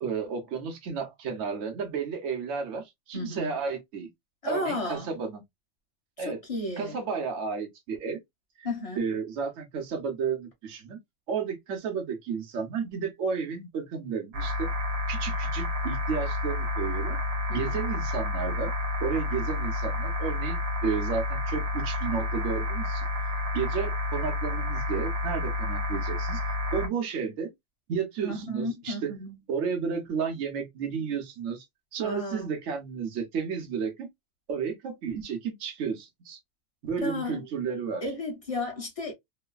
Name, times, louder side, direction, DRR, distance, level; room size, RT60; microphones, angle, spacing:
voice 1, 0.0-4.1 4.5-5.4 6.2-6.4 6.8-8.2 8.6-8.7 9.0-11.0 11.3-14.7 15.1-17.2 17.5-18.7 19.0-26.4 26.7-27.5 27.9-29.1 29.5-31.6 31.9-34.1 34.5-36.4 36.8-38.0, right 6 dB, 65° right, 1.1 m, -32 dB
voice 2, 3.1-3.5 4.4-5.1 6.2-7.0 8.6-9.0 17.5-17.8 28.2-29.4 32.0-32.5 37.0-37.4 38.0-39.1, left 2 dB, 25° left, 1.2 m, -33 dB
sound 1, 14.3-26.9, left 2 dB, 85° right, 1.2 m, -30 dB
3.1 x 2.1 x 2.2 m
omnidirectional pair, 1.4 m